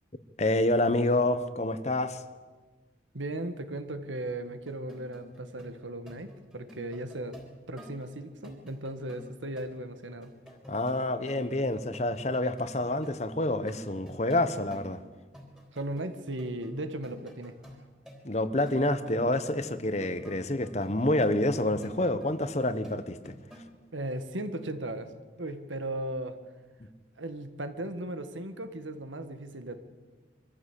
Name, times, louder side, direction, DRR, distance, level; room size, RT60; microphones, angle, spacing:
voice 1, 0.4-2.2 10.7-15.0 18.2-23.3 26.8-26.9, left 1 dB, 35° left, 12 dB, 1.1 m, -28 dB
voice 2, 3.1-7.4 7.7-10.3 15.7-17.6 23.9-25.1 25.4-26.3 27.2-29.8, right 1 dB, 85° right, 9 dB, 1.8 m, -36 dB
sound 1, 4.3-12.7 13.0-15.0 15.3-16.1 16.4-23.8, equal, 5° right, 3.6 m, -51 dB
24.0 x 14.5 x 8.4 m, 1.4 s
head